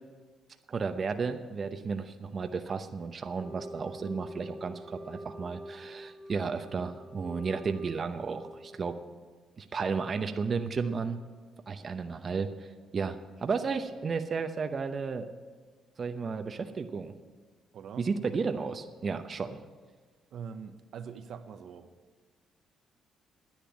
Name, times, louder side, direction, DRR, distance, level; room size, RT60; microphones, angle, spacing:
voice 1, 0.7-8.9 9.6-11.2 11.7-15.3 16.0-17.1 18.0-19.6, right 5 dB, 40° right, 7 dB, 0.8 m, -33 dB
Wind instrument woodwind instrument, 3.4-9.0, equal, 5° left, 2.3 m, -46 dB
voice 2, 17.7-18.1 20.3-21.9, right 7 dB, 70° right, 8 dB, 0.9 m, -43 dB
10.5 x 9.8 x 8.7 m, 1.4 s
cardioid pair, 90°, 0 cm